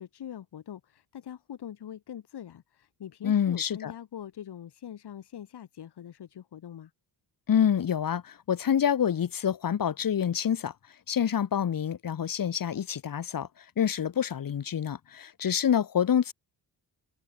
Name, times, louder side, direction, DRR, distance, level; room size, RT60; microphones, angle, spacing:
voice 1, 0.0-6.9, left 10 dB, 70° left, 6.2 m, -43 dB
voice 2, 3.2-3.9 7.5-10.7 11.1-13.5 13.8-16.3, left 8 dB, 55° left, 3.3 m, -27 dB
wide cardioid pair, 150°, 41 cm